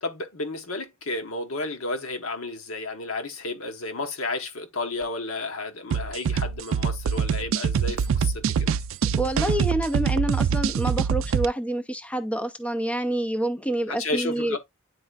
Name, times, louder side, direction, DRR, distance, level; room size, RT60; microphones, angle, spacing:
voice 1, 0.0-8.7 13.9-14.6, left 2 dB, 70° left, 1.2 m, -32 dB
sound 1, 5.9-11.5, right 6 dB, 70° right, 0.4 m, -24 dB
voice 2, 9.1-14.6, right 1 dB, 5° left, 0.5 m, -27 dB
9.7 x 4.3 x 2.4 m
head